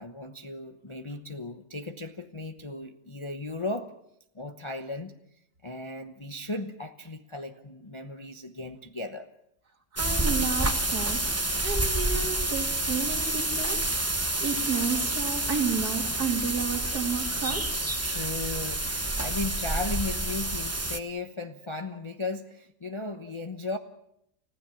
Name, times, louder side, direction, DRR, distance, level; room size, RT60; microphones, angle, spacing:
voice 1, 0.0-3.9 4.3-5.1 5.6-9.3 18.1-23.8, left 2 dB, 25° left, 5 dB, 0.9 m, -36 dB
voice 2, 9.9-11.2 11.6-17.6, right 5 dB, 85° right, 3 dB, 3.2 m, -32 dB
sound 1, 10.0-21.0, right 2 dB, 10° right, 0.8 m, -28 dB
30.0 x 16.0 x 7.1 m, 0.79 s
omnidirectional pair, 1.6 m